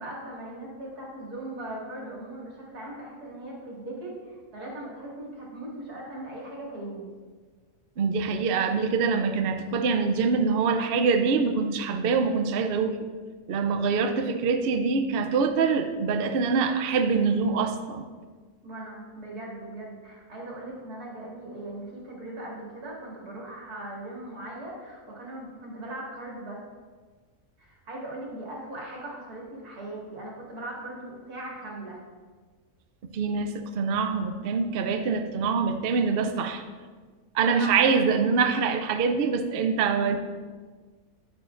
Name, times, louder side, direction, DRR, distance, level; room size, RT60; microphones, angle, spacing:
voice 1, 0.0-7.1 18.6-26.6 27.6-32.0 37.5-37.8, right 1 dB, 90° right, -4 dB, 2.6 m, -39 dB
voice 2, 8.0-13.0 13.5-18.1 33.1-36.6 37.3-40.2, right 5 dB, 60° right, 6 dB, 0.6 m, -24 dB
9.4 x 8.5 x 2.5 m, 1.5 s
omnidirectional pair, 1.6 m